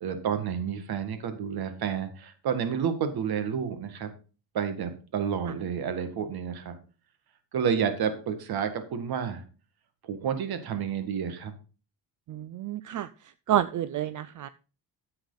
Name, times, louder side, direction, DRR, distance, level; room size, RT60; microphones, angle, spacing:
voice 1, 0.0-4.1 4.5-6.7 7.5-9.4 10.0-11.5, right 7 dB, 70° right, 9 dB, 1.9 m, -30 dB
voice 2, 12.3-13.1 13.5-14.5, right 12 dB, 50° right, 15 dB, 0.5 m, -28 dB
10.5 x 8.0 x 4.0 m, 0.35 s
cardioid pair, 125°, 39 cm